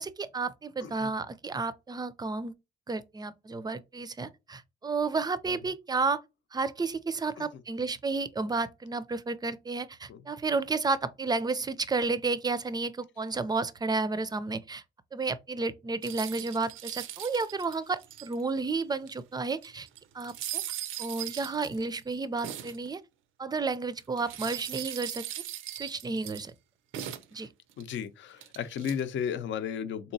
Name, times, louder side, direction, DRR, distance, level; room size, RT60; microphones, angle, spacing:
voice 1, 0.0-2.5 2.9-6.2 6.5-14.8 15.1-19.9 20.1-20.6 21.0-23.0 23.4-25.3 25.7-26.5 27.3-27.5, right 3 dB, 20° right, 0.4 m, -32 dB
sound 1, 16.0-18.6 19.1-19.2 19.4-22.9 24.2-26.5 26.9-27.8 28.4-29.0, right 12 dB, 80° right, 0.5 m, -39 dB
voice 2, 27.8-30.1, left 8 dB, 70° left, 0.6 m, -34 dB
3.8 x 2.9 x 2.6 m
cardioid pair, 90°, 20 cm